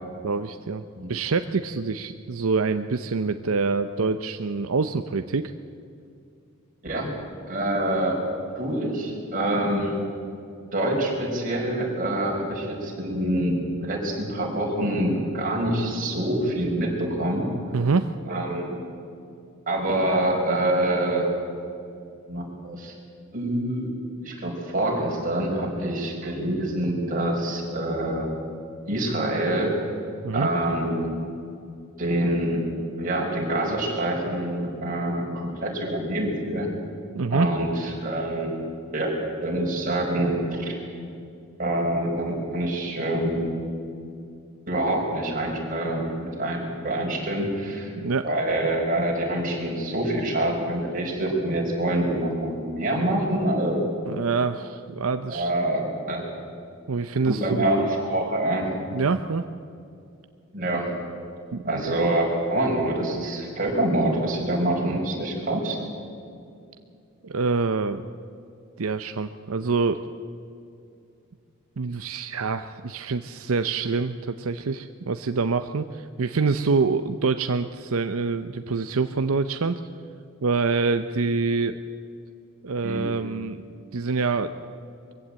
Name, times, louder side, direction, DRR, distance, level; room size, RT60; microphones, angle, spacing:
voice 1, 0.2-0.8 1.1-5.5 17.7-18.1 30.2-30.5 37.1-37.5 48.0-48.2 54.1-55.5 56.9-57.9 58.9-59.5 61.5-62.0 67.2-68.0 68.8-70.0 71.8-79.8 80.4-81.8 82.6-83.6 83.9-84.5, right 4 dB, 80° right, 9 dB, 0.7 m, -26 dB
voice 2, 7.5-8.2 8.6-10.0 10.7-17.5 18.3-18.8 19.7-21.3 22.3-22.9 23.3-28.3 28.9-29.7 30.3-31.1 32.0-32.6 33.0-36.7 37.3-38.6 38.9-40.8 41.6-43.5 44.7-47.9 48.2-53.8 55.3-56.3 57.2-58.8 60.5-60.9 61.7-65.8 82.8-83.0, right 1 dB, 40° right, -1 dB, 5.3 m, -26 dB
22.5 x 16.0 x 8.8 m, 2.5 s
head